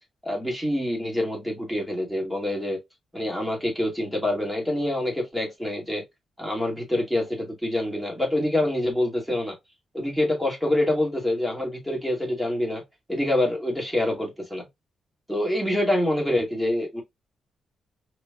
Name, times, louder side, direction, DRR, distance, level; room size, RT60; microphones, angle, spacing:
voice 1, 0.2-2.8 3.1-6.0 6.4-9.6 9.9-12.8 13.1-14.7 15.3-17.0, left 1 dB, ahead, 2.3 m, -26 dB
4.9 x 3.2 x 2.4 m
cardioid pair, 100°, 0 cm